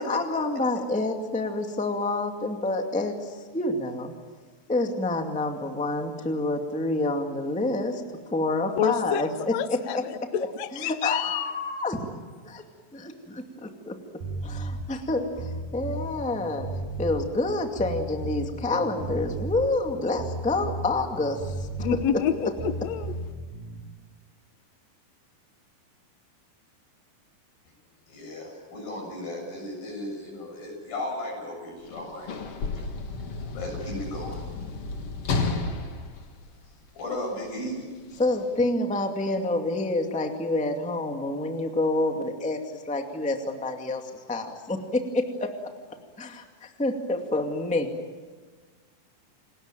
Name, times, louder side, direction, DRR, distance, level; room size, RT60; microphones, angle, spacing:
voice 1, 0.0-4.1 4.7-8.0 8.3-10.3 10.7-12.0 12.4-12.6 12.9-14.0 14.4-16.7 17.0-21.7 22.4-22.5 38.2-45.5 46.2-47.9, left 2 dB, 5° left, 3 dB, 1.4 m, -28 dB
voice 2, 8.8-9.2 9.5-11.5 21.8-23.2, left 8 dB, 70° left, 11 dB, 1.8 m, -28 dB
sound 1, 14.2-23.8, right 2 dB, 75° right, 4.4 m, -34 dB
voice 3, 28.1-32.3 33.5-34.4 37.0-37.9, left 1 dB, 85° left, 2 dB, 9.2 m, -35 dB
Sliding door / Slam, 31.8-37.2 38.1-38.3, left 3 dB, 45° left, 2.7 m, -32 dB
29.0 x 20.0 x 9.2 m, 1.5 s
omnidirectional pair, 4.1 m